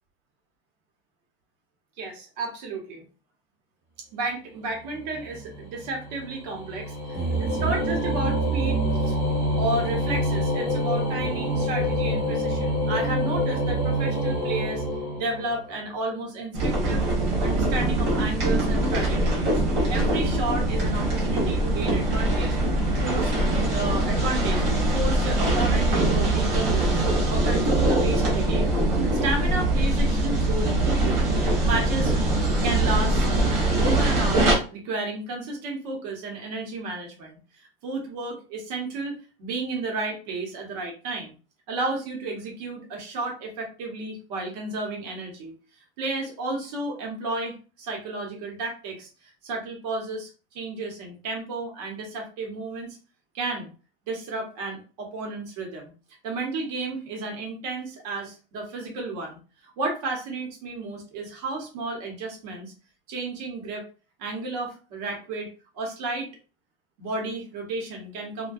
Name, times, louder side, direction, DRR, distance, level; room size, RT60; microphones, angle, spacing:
voice 1, 2.0-3.0 4.1-9.2 9.5-14.8 15.1-19.6 19.9-22.6 23.0-23.3 23.7-24.6 24.9-30.8 31.0-31.2 31.6-32.1 32.6-33.3 33.8-41.3 41.7-53.0 53.3-53.7 54.1-55.9 56.2-59.4 59.8-62.7 63.1-63.8 64.2-66.3 67.0-68.5, right 2 dB, 45° right, 1 dB, 0.8 m, -32 dB
sound 1, 4.9-15.8, equal, 10° left, 0.7 m, -26 dB
sound 2, 16.5-34.5, right 1 dB, 20° right, 0.4 m, -23 dB
2.6 x 2.2 x 2.3 m, 0.35 s
supercardioid pair, 175°, 29 cm